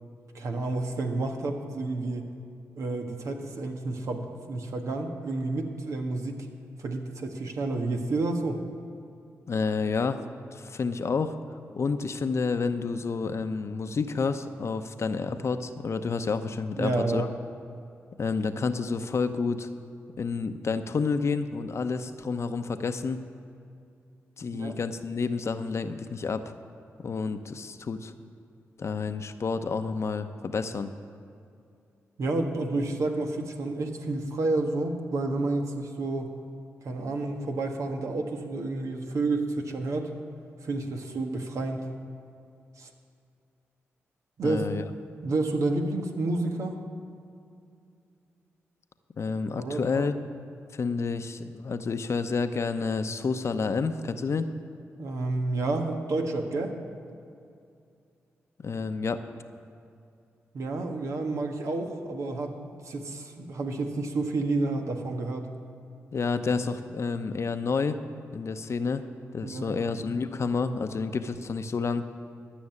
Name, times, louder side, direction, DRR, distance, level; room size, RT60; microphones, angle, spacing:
voice 1, 0.3-2.3 2.8-6.5 6.8-8.6 16.8-17.3 24.5-24.7 32.2-36.4 36.8-40.1 40.6-41.9 42.8-42.9 44.4-44.6 45.2-46.8 49.6-50.1 55.0-56.7 60.5-65.5 69.4-69.8, right 2 dB, 70° right, 3 dB, 1.5 m, -30 dB
voice 2, 9.5-10.2 10.5-11.4 11.7-17.3 18.2-19.7 20.2-23.2 24.4-26.4 27.0-28.1 28.8-30.9 44.4-44.8 49.2-50.1 50.7-54.5 58.6-59.2 66.1-68.0 68.3-69.1 69.3-72.0, left 4 dB, 55° left, 9 dB, 0.8 m, -29 dB
13.5 x 6.2 x 9.6 m, 2.5 s
supercardioid pair, 45°, 6 cm